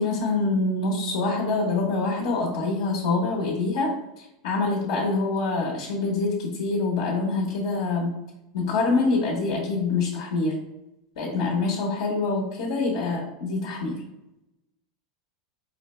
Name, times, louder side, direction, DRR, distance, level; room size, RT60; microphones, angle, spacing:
voice 1, 0.0-8.2 8.5-10.6 11.2-13.9, left 3 dB, 75° left, -3 dB, 0.9 m, -25 dB
4.5 x 2.1 x 3.0 m, 0.91 s
hypercardioid pair, 110°, 3 cm